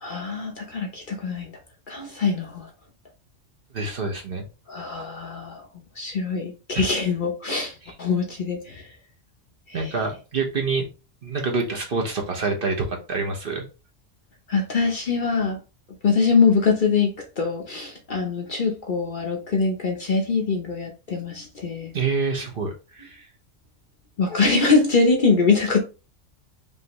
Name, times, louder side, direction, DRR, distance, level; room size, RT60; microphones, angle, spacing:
voice 1, 0.0-1.5 1.9-2.7 4.7-5.7 6.0-8.9 9.7-10.0 14.5-15.6 16.0-21.9 24.2-25.8, left 4 dB, 45° left, 0.8 m, -23 dB
voice 2, 3.7-4.5 6.7-6.8 9.7-10.9 11.2-13.6 21.9-23.3, right 4 dB, 50° right, 1.1 m, -27 dB
5.3 x 2.7 x 2.9 m
omnidirectional pair, 1.3 m